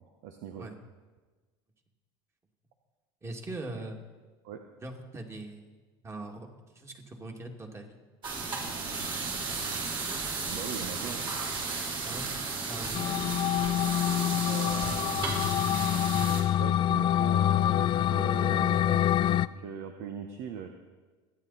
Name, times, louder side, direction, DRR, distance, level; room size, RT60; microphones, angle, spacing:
voice 1, 0.2-0.7 3.8-3.9 4.4-4.6 10.5-11.2 14.4-15.2 16.6-20.7, right 8 dB, 70° right, 5 dB, 1.2 m, -40 dB
voice 2, 3.2-4.0 4.8-5.8 6.0-6.5 6.7-8.0 12.0-12.3 12.7-13.2, right 2 dB, 20° right, 3 dB, 2.4 m, -41 dB
sound 1, 8.2-16.4, right 4 dB, 40° right, 5.5 m, -34 dB
sound 2, 12.9-19.5, left 11 dB, 40° left, 0.4 m, -26 dB
26.0 x 9.7 x 4.2 m, 1.3 s
supercardioid pair, 95°, 13 cm